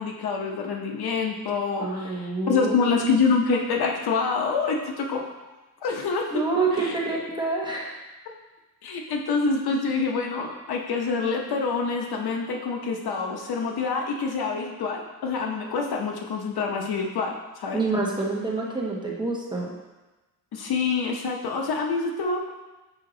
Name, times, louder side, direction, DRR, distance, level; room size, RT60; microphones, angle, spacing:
voice 1, 0.0-5.2 5.8-6.3 6.7-7.0 8.8-17.8 20.5-22.5, left 4 dB, 85° left, 2 dB, 0.9 m, -26 dB
voice 2, 1.8-3.0 6.3-8.0 17.7-19.7, right 3 dB, 10° right, -3 dB, 1.0 m, -27 dB
6.2 x 4.6 x 3.8 m, 1.1 s
wide cardioid pair, 150°, 37 cm